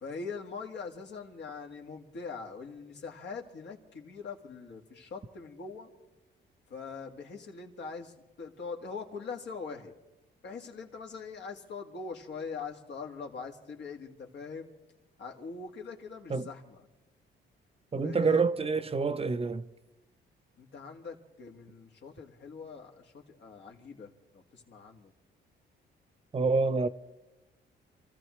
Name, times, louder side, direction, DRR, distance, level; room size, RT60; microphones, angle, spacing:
voice 1, 0.0-5.9 6.7-9.9 10.4-14.7 15.2-16.8 18.0-18.4 20.6-25.1 26.6-26.8, left 5 dB, 65° left, 1.8 m, -42 dB
voice 2, 17.9-19.6 26.3-26.9, right 4 dB, 30° right, 0.6 m, -27 dB
28.0 x 14.0 x 3.1 m
cardioid pair, 90°, 20 cm